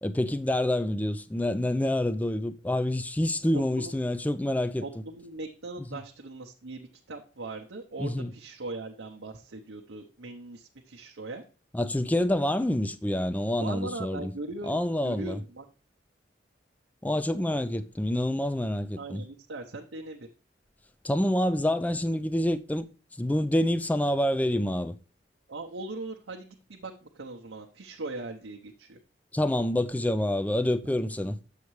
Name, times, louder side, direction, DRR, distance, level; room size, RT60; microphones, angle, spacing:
voice 1, 0.0-4.8 8.0-8.3 11.7-14.3 14.7-15.4 17.0-19.2 21.0-22.9 23.2-25.0 29.3-31.4, left 1 dB, 10° left, 0.3 m, -27 dB
voice 2, 4.8-11.4 13.6-15.7 19.0-20.3 25.5-29.0, right 2 dB, 85° right, 0.8 m, -40 dB
6.9 x 6.5 x 3.1 m
head